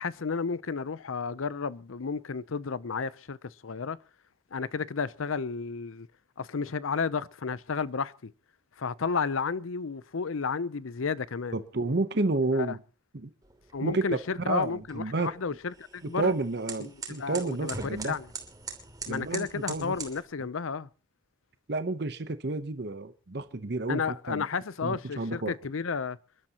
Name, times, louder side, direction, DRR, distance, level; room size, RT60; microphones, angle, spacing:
voice 1, 0.0-4.0 4.5-6.1 6.4-8.3 8.8-11.6 12.6-12.7 13.7-16.3 16.8-18.2 19.1-20.9 23.9-26.2, left 5 dB, 90° left, 0.6 m, -32 dB
voice 2, 11.5-12.8 13.1-13.3 13.8-14.0 14.5-15.3 16.2-18.2 19.1-19.9 21.7-24.4 24.8-25.6, right 3 dB, 55° right, 0.9 m, -30 dB
sound 1, 13.4-20.2, right 4 dB, 20° right, 2.8 m, -43 dB
28.5 x 12.0 x 2.9 m
head